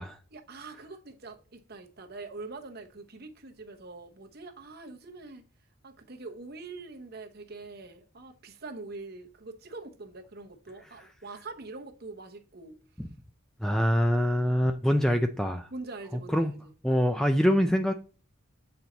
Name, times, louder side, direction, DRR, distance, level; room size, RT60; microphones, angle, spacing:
voice 1, 0.3-5.4 5.8-12.8 15.7-16.7, right 3 dB, 45° right, 0.9 m, -44 dB
voice 2, 13.6-15.7 16.3-16.6 16.8-17.9, equal, ahead, 0.3 m, -24 dB
7.8 x 4.3 x 3.9 m
head